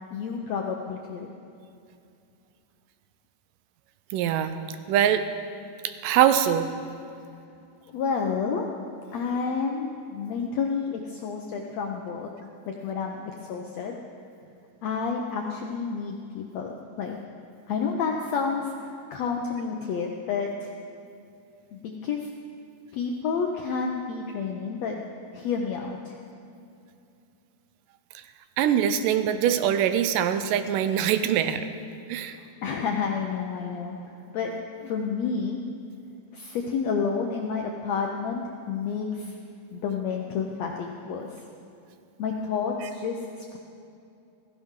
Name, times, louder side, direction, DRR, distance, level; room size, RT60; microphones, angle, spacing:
voice 1, 0.1-1.3 7.9-8.6 9.1-12.3 12.7-13.2 13.5-14.0 14.8-17.2 17.7-20.7 21.7-22.3 22.9-25.0 25.3-26.2 32.4-34.5 34.8-35.6 36.3-38.4 38.7-39.4 39.7-41.4 42.2-43.2 43.5-43.6, left 5 dB, 75° left, 1 dB, 1.5 m, -30 dB
voice 2, 4.1-4.6 4.9-5.2 6.0-6.7 28.6-31.7 32.1-32.4, right 9 dB, 80° right, 10 dB, 2.1 m, -23 dB
16.0 x 14.5 x 3.7 m, 2.6 s
omnidirectional pair, 3.9 m